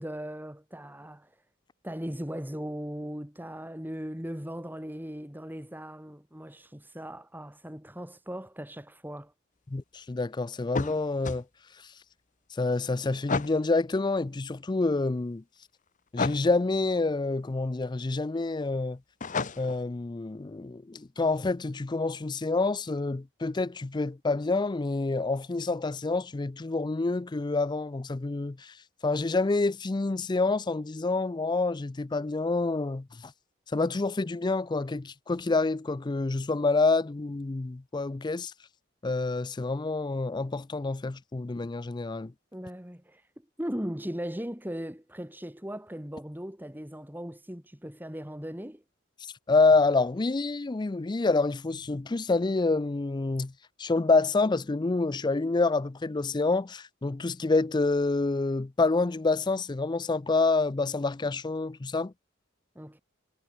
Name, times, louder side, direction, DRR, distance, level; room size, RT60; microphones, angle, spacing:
voice 1, 0.0-1.4 1.8-9.3 42.5-43.3 43.6-48.8 62.7-63.0, equal, 10° right, 2.9 m, -38 dB
voice 2, 9.7-11.4 12.5-15.4 16.1-19.0 19.6-28.7 29.0-33.3 33.7-38.5 39.0-42.3 49.5-53.5 53.8-62.1, left 3 dB, 20° left, 0.4 m, -27 dB
sound 1, 10.7-11.4 13.3-13.6 16.2-16.5 19.2-19.8, left 4 dB, 40° left, 1.0 m, -31 dB
head